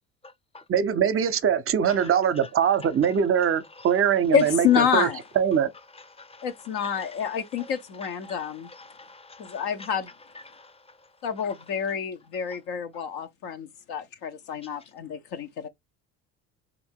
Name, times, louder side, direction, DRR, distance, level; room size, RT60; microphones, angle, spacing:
voice 1, 0.7-5.1 5.4-5.7, right 8 dB, 35° right, 0.7 m, -22 dB
voice 2, 2.8-3.2 3.8-4.2 5.7-10.7 11.5-11.6, left 3 dB, 15° left, 0.7 m, -47 dB
voice 3, 4.3-5.2 6.4-8.7 9.4-10.1 11.2-15.7, left 8 dB, 65° left, 0.8 m, -27 dB
3.5 x 2.6 x 4.4 m
hypercardioid pair, 65°, 41 cm